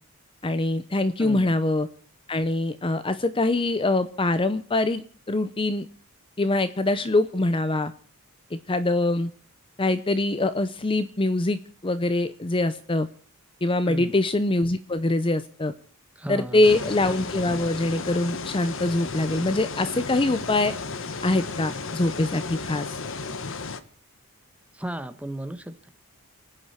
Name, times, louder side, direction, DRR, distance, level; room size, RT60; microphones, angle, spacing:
voice 1, 0.4-1.9 2.3-5.0 5.3-5.9 6.4-7.9 8.5-9.3 9.8-13.1 13.6-15.7 16.3-20.7 21.2-22.9, left 2 dB, 25° left, 13 dB, 0.6 m, -24 dB
voice 2, 1.2-1.5 13.9-14.1 16.2-16.9 24.7-25.9, right 1 dB, 5° right, 10 dB, 1.1 m, -35 dB
sound 1, 16.6-23.8, left 4 dB, 60° left, 1.2 m, -34 dB
29.5 x 9.9 x 4.3 m, 0.43 s
head